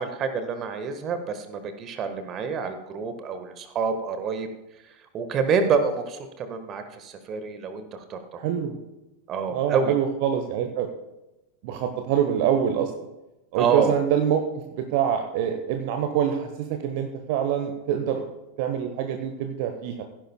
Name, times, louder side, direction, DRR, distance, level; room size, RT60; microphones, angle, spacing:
voice 1, 0.0-4.5 5.1-7.8 8.1-8.4 9.3-9.9 13.6-13.9, right 5 dB, 30° right, 8 dB, 1.3 m, -27 dB
voice 2, 8.4-8.8 9.5-10.9 11.6-12.9 13.5-18.3 18.6-20.0, right 9 dB, 45° right, 6 dB, 1.0 m, -25 dB
16.0 x 10.5 x 2.2 m, 1.0 s
figure-of-eight pair, 90°, 0 cm